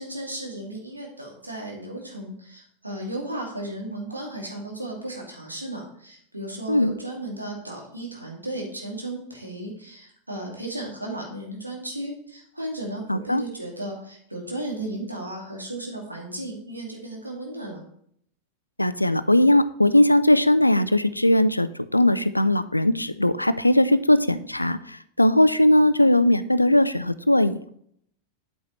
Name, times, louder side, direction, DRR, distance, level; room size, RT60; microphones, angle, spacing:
voice 1, 0.0-17.8, right 1 dB, 85° right, -1 dB, 2.4 m, -35 dB
voice 2, 13.1-13.4 18.8-27.8, left 1 dB, 85° left, 15 dB, 0.4 m, -19 dB
8.6 x 8.0 x 3.1 m, 0.67 s
figure-of-eight pair, 90°, 0 cm